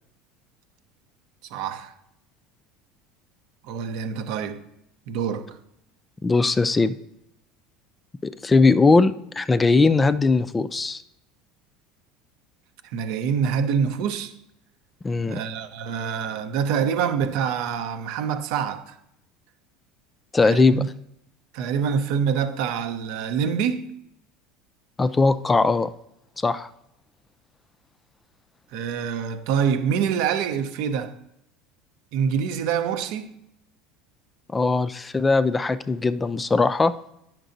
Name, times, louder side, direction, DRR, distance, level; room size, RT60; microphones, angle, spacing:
voice 1, 1.5-1.9 3.6-4.6 5.1-5.6 12.9-14.3 15.3-19.0 20.4-20.9 21.5-23.9 28.7-31.1 32.1-33.4, right 7 dB, 65° right, 0.7 m, -26 dB
voice 2, 6.2-7.0 8.2-11.0 15.0-15.4 20.3-20.8 25.0-25.9 26.4-26.7 34.5-36.9, left 3 dB, 20° left, 0.4 m, -20 dB
9.8 x 5.9 x 2.6 m
hypercardioid pair, 75°, 0 cm